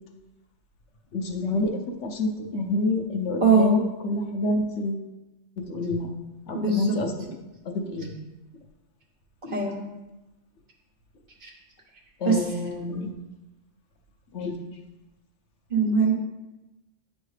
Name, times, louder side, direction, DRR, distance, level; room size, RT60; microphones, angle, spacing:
voice 1, 1.1-5.1 5.7-6.1 6.5-7.1 7.6-8.1 12.2-13.1 14.3-14.5, left 2 dB, 80° left, 2 dB, 1.1 m, -28 dB
voice 2, 3.4-3.7 6.5-7.0 9.4-9.8 11.4-11.5 12.2-12.4 15.7-16.1, right 4 dB, 50° right, 0 dB, 1.2 m, -21 dB
9.2 x 3.2 x 3.2 m, 1.0 s
omnidirectional pair, 1.2 m